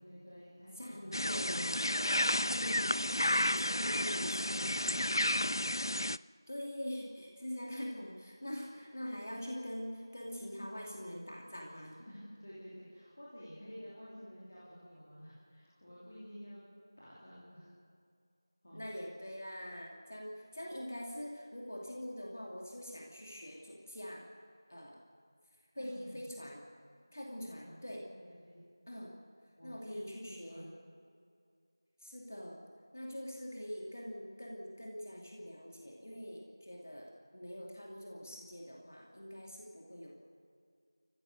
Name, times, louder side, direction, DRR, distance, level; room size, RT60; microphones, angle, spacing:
voice 1, 0.0-1.3 3.5-5.2 12.1-16.6 17.0-17.7 18.6-18.8 25.8-26.3 27.4-28.7 29.5-30.8, equal, 20° left, -9 dB, 3.0 m, -52 dB
voice 2, 0.8-2.1 2.5-3.2 3.4-5.1 6.5-11.9 18.7-24.3 24.7-25.0 25.7-26.6 27.1-28.1 28.9-29.2 29.6-30.7 32.0-32.6 32.9-40.2, equal, 40° left, -1 dB, 2.6 m, -44 dB
sound 1, 1.1-6.2, left 1 dB, 85° left, 0.4 m, -32 dB
28.5 x 15.5 x 6.6 m, 2.3 s
figure-of-eight pair, 180°, 2 cm